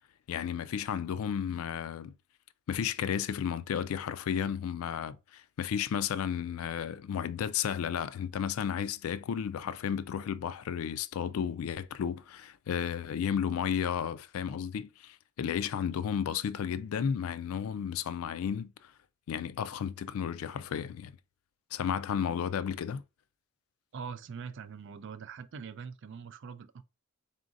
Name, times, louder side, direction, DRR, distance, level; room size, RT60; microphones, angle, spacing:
voice 1, 0.3-2.1 2.7-18.9 19.3-21.1 21.7-23.0, left 8 dB, 75° left, 0.3 m, -33 dB
voice 2, 23.9-26.8, right 6 dB, 55° right, 0.3 m, -43 dB
3.9 x 3.7 x 2.5 m
head